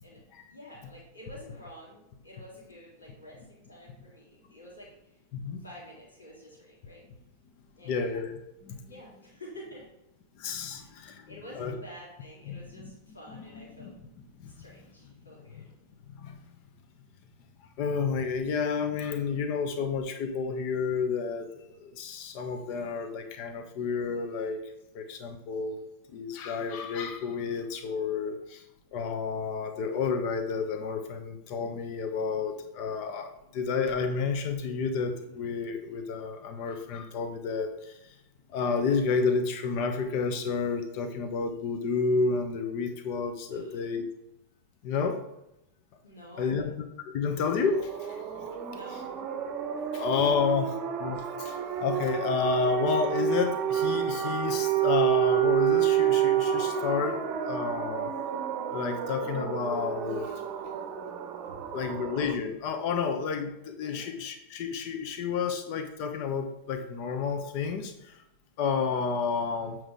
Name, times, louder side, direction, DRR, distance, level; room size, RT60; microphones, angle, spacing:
voice 1, 0.5-5.2 5.6-7.0 7.8-8.1 8.8-9.8 10.7-10.9 11.3-13.9 14.4-15.7 43.5-43.8 46.0-46.7 48.7-49.2 50.4-50.7 61.5-61.7 63.8-64.1, equal, 75° left, -5 dB, 2.5 m, -49 dB
voice 2, 7.8-8.8 10.3-11.7 12.5-12.9 13.3-13.4 13.8-14.6 15.5-15.6 16.1-16.4 17.8-24.6 24.9-25.8 26.1-28.6 28.9-38.1 38.5-44.1 44.8-45.2 46.4-46.7 47.0-48.4 49.9-50.7 51.0-57.2 57.5-58.1 58.7-60.3 61.7-68.2 68.6-69.8, left 5 dB, 45° left, 7 dB, 1.0 m, -30 dB
sound 1, 47.5-62.3, right 9 dB, 40° right, 0.8 m, -29 dB
7.8 x 4.7 x 3.8 m, 0.87 s
figure-of-eight pair, 90°, 0 cm